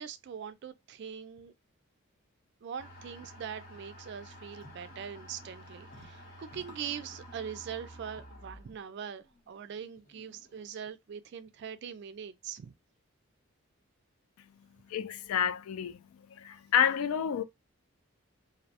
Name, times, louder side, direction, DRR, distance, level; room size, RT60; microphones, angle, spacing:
voice 1, 0.0-1.5 2.6-12.7, right 7 dB, 50° right, 0.3 m, -42 dB
sound 1, 2.8-10.9, equal, 40° left, 0.7 m, -51 dB
voice 2, 14.9-16.0 16.4-17.4, left 8 dB, 75° left, 0.3 m, -29 dB
2.6 x 2.0 x 2.7 m
head